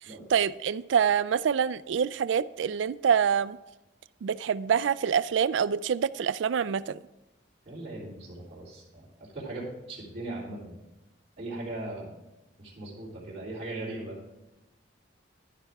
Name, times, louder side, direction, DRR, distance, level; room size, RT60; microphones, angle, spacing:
voice 1, 0.3-3.6 4.2-7.0, right 7 dB, 75° right, 16 dB, 0.3 m, -26 dB
voice 2, 7.6-9.1 9.3-10.7 11.4-12.2 12.6-14.2, right 2 dB, 35° right, -7 dB, 3.3 m, -38 dB
11.0 x 10.0 x 3.5 m, 1.0 s
head